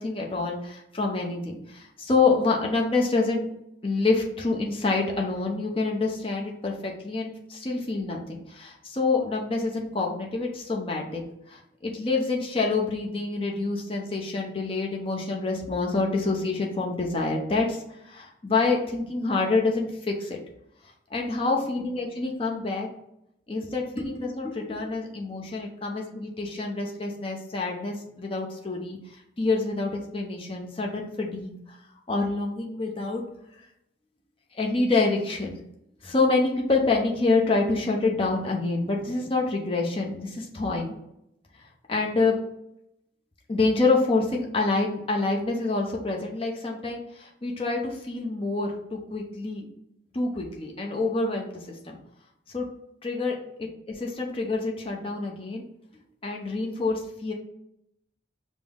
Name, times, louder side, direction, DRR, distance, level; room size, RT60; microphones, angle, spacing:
voice 1, 0.0-3.5 3.8-11.2 11.5-20.4 21.1-22.9 23.5-31.8 32.1-33.2 34.6-35.6 36.0-40.9 41.9-42.4 43.5-49.7 50.1-52.0 52.5-52.7 53.0-55.6 56.2-57.3, left 3 dB, 30° left, 0 dB, 0.6 m, -27 dB
5.1 x 2.0 x 3.6 m, 0.80 s
head